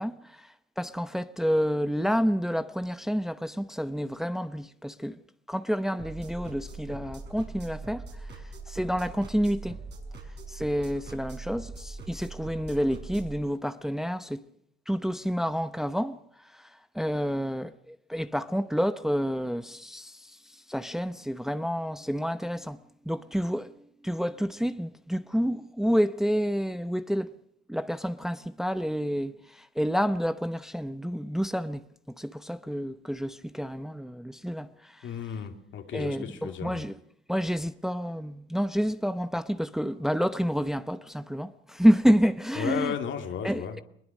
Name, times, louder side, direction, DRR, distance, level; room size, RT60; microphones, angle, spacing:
voice 1, 0.0-5.2 5.5-9.8 10.5-14.5 14.9-27.3 27.7-31.8 32.2-35.1 35.9-36.9 37.3-42.9 43.4-43.8, equal, ahead, 0.8 m, -29 dB
sound 1, 6.0-13.4, right 3 dB, 60° right, 6.2 m, -41 dB
voice 2, 35.0-36.8 42.6-43.8, left 7 dB, 75° left, 2.7 m, -34 dB
21.5 x 20.5 x 6.4 m
cardioid pair, 90°, 20 cm